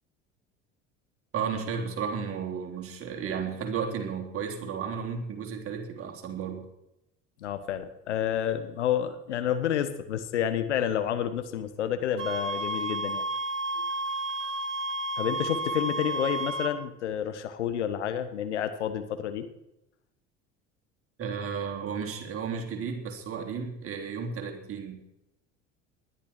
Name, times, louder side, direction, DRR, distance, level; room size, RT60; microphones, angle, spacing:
voice 1, 1.3-6.6 21.2-25.0, right 6 dB, 35° right, 2 dB, 3.7 m, -33 dB
voice 2, 7.4-13.2 13.8-13.9 15.2-19.5, left 9 dB, 70° left, 11 dB, 1.4 m, -29 dB
sound 1, 12.2-16.7, right 2 dB, 75° right, 1.5 m, -31 dB
20.0 x 12.0 x 4.6 m, 0.88 s
figure-of-eight pair, 65°, 36 cm